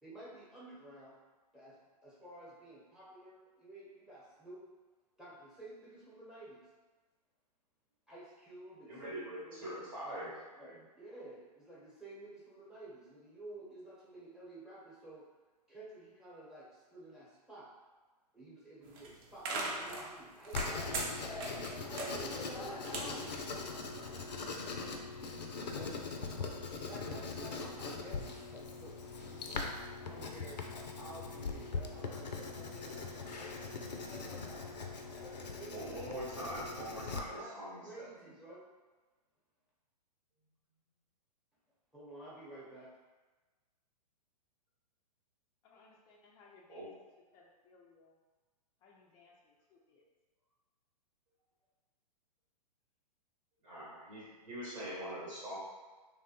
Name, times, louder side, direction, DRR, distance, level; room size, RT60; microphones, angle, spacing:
voice 1, 0.0-1.2 1.5-1.8 2.0-4.7 5.2-6.6 8.1-15.3 15.7-17.7 18.3-20.7 21.4-25.1 25.6-26.0 26.8-30.6 30.9-34.6 35.1-36.0 36.4-38.7 41.9-42.9, right 1 dB, ahead, -8 dB, 0.9 m, -52 dB
voice 2, 8.9-10.4 35.7-38.1 46.7-46.9 53.6-55.6, right 1 dB, 75° right, -9 dB, 1.3 m, -43 dB
sound 1, 18.8-24.2, right 2 dB, 35° right, 0.5 m, -40 dB
Writing, 20.5-37.2, left 4 dB, 85° left, 0.4 m, -41 dB
voice 3, 45.6-47.1 47.3-48.2 48.8-50.0, left 3 dB, 20° left, -1 dB, 0.3 m, -63 dB
3.1 x 2.1 x 2.8 m, 1.3 s
hypercardioid pair, 115°, 21 cm